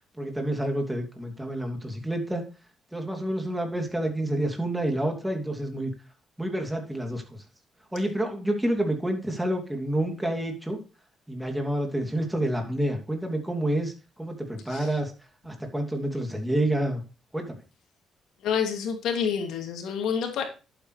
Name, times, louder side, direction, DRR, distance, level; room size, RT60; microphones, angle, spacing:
voice 1, 0.2-2.5 2.9-5.9 6.4-7.4 7.9-10.8 11.3-13.9 14.2-15.1 15.4-17.0 17.3-17.5, right 1 dB, 5° right, 2 dB, 2.9 m, -28 dB
voice 2, 18.4-20.4, left 7 dB, 85° left, 4 dB, 2.7 m, -28 dB
11.0 x 8.8 x 3.3 m, 0.32 s
cardioid pair, 90°, 0 cm